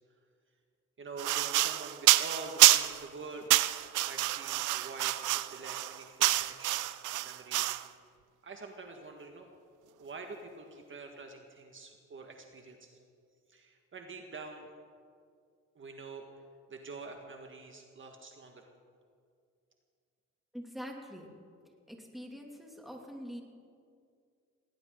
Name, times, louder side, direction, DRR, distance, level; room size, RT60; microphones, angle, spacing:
voice 1, 1.0-3.5 4.0-7.8 8.4-9.5 10.0-13.0 13.5-14.7 15.8-16.4 16.7-18.7, right 3 dB, 40° right, 3 dB, 1.7 m, -46 dB
sound 1, 1.2-3.0 3.5-7.9, right 16 dB, 85° right, 0.6 m, -27 dB
voice 2, 20.5-21.3 21.9-23.4, equal, ahead, 1 dB, 2.6 m, -44 dB
18.5 x 18.5 x 3.9 m, 2.2 s
cardioid pair, 90°, 30 cm